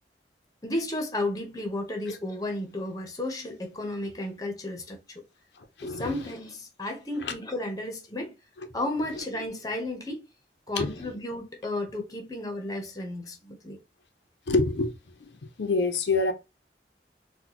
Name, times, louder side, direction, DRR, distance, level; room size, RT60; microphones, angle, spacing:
voice 1, 0.6-5.2 5.8-8.4 8.7-10.3 10.7-13.8, left 1 dB, 20° left, 0.7 m, -33 dB
voice 2, 5.8-6.1 7.2-7.3 10.8-10.9 14.5-14.9 15.2-15.3 15.6-16.3, left 3 dB, 75° left, 0.6 m, -26 dB
4.0 x 2.2 x 2.8 m
head